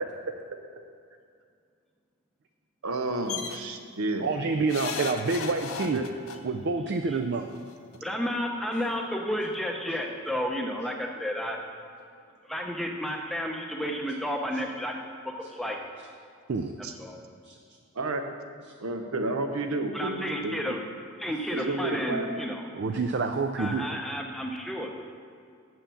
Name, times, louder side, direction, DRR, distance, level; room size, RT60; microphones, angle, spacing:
voice 1, 2.8-4.3 5.9-6.1 16.8-16.9 18.0-18.2 18.8-20.8 21.5-22.3, right 2 dB, 85° right, 6 dB, 0.8 m, -31 dB
sound 1, 3.3-3.6 4.7-6.4 7.6-7.7 7.9-8.0, left 6 dB, 90° left, 0.6 m, -35 dB
voice 2, 4.2-6.0 6.4-7.5 16.5-16.7 17.4-17.6 22.7-23.9, right 4 dB, 50° right, 6 dB, 0.4 m, -28 dB
voice 3, 8.0-11.6 12.5-14.9 15.4-15.8 17.0-17.2 19.9-20.8 21.2-22.7 23.6-24.9, equal, ahead, 1 dB, 0.6 m, -31 dB
7.2 x 5.8 x 7.0 m, 2.3 s
head